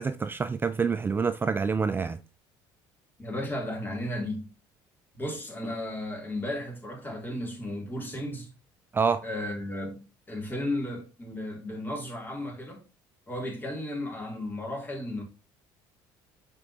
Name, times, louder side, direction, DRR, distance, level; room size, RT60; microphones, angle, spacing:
voice 1, 0.0-2.2 8.9-9.2, right 5 dB, 20° right, 0.4 m, -27 dB
voice 2, 3.2-4.5 5.1-8.5 9.2-12.8 13.3-15.2, left 1 dB, 20° left, 3.1 m, -34 dB
7.6 x 4.4 x 2.8 m
supercardioid pair, 90°, 10 cm